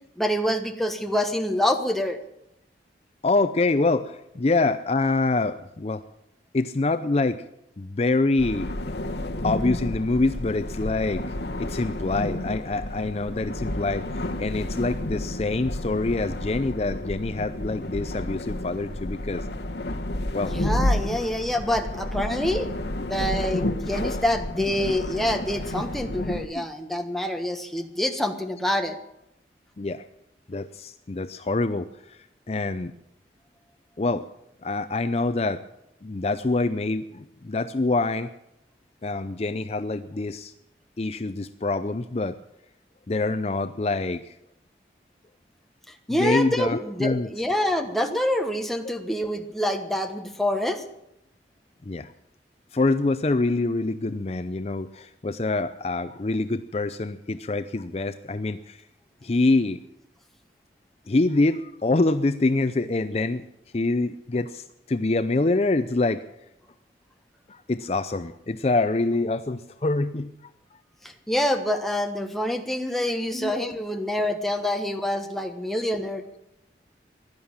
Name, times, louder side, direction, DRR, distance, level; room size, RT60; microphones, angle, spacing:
voice 1, 0.2-2.2 20.5-22.7 23.1-29.0 46.1-50.8 71.0-76.2, left 1 dB, ahead, 4 dB, 1.3 m, -26 dB
voice 2, 3.2-6.0 6.5-7.4 7.8-8.7 9.4-19.5 20.3-20.5 26.5-26.6 29.8-30.0 30.5-32.9 34.0-34.2 34.6-35.6 36.0-38.3 39.0-40.5 41.0-42.4 43.1-44.4 46.1-47.3 51.8-52.1 52.7-58.9 59.2-59.8 61.1-63.5 63.7-66.2 67.5-70.5 73.3-73.7, left 2 dB, 35° left, 11 dB, 0.5 m, -25 dB
sound 1, 8.4-26.5, left 1 dB, 70° left, 1.2 m, -31 dB
16.0 x 11.5 x 7.3 m, 0.82 s
head